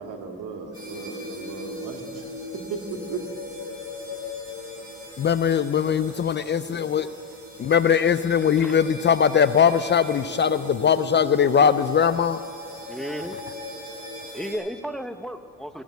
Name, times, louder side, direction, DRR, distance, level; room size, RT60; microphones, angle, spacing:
voice 1, 0.0-2.4 2.7-3.2, right 5 dB, 85° right, 3 dB, 1.9 m, -36 dB
sound 1, 0.7-14.5, left 2 dB, 30° right, 4.1 m, -38 dB
voice 2, 5.2-7.1 7.6-12.4, left 7 dB, 35° left, 13 dB, 0.4 m, -20 dB
voice 3, 12.9-13.4 14.3-15.8, equal, ahead, 9 dB, 0.7 m, -33 dB
17.5 x 7.2 x 9.2 m, 2.3 s
cardioid pair, 90°, 30 cm